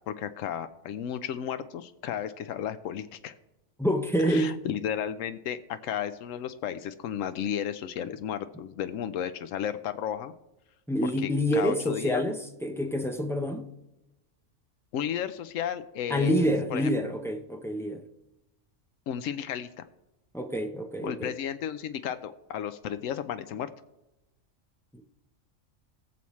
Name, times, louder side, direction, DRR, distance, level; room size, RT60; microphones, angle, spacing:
voice 1, 0.1-3.3 4.2-10.3 11.2-12.2 14.9-16.9 19.1-19.7 21.0-23.7, left 9 dB, 85° left, 1.0 m, -33 dB
voice 2, 3.8-4.6 10.9-13.7 16.1-18.0 20.3-21.3, equal, 5° left, 0.6 m, -27 dB
19.5 x 7.1 x 3.1 m
omnidirectional pair, 1.3 m